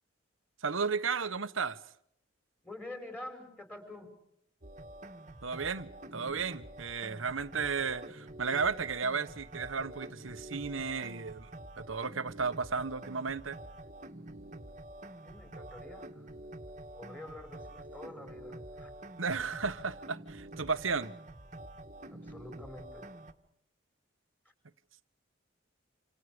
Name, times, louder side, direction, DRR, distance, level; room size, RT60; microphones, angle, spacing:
voice 1, 0.6-1.8 5.4-11.5 11.8-13.6 19.2-21.1, right 5 dB, 90° right, 1.3 m, -34 dB
voice 2, 2.6-4.1 15.2-16.3 16.9-18.9 22.1-23.1, left 1 dB, 10° left, 5.6 m, -47 dB
sound 1, 4.6-23.3, right 1 dB, 40° right, 1.7 m, -47 dB
28.0 x 28.0 x 5.2 m
head